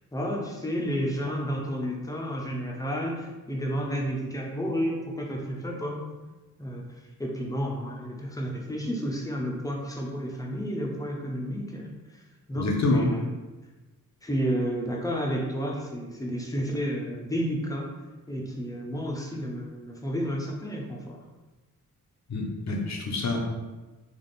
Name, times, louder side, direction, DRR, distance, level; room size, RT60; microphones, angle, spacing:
voice 1, 0.1-6.0 6.6-6.8 7.2-12.2 12.5-13.2 14.2-17.9 18.3-21.2, equal, 10° left, -1 dB, 0.6 m, -31 dB
voice 2, 12.6-13.1 22.3-23.4, left 2 dB, 50° left, 1 dB, 0.7 m, -26 dB
3.5 x 2.4 x 3.9 m, 1.2 s
wide cardioid pair, 110°, 35 cm